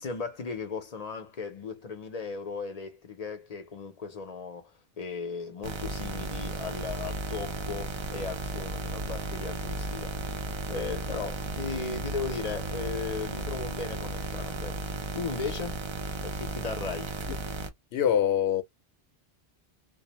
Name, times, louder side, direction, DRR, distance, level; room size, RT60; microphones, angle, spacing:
voice 1, 0.0-10.3 10.7-14.8 15.1-15.8 16.2-17.2, left 5 dB, 45° left, 0.6 m, -37 dB
sound 1, 5.6-17.7, right 2 dB, 45° right, 0.4 m, -35 dB
voice 2, 17.9-18.6, left 9 dB, 80° left, 0.8 m, -24 dB
2.5 x 2.0 x 2.8 m
omnidirectional pair, 1.0 m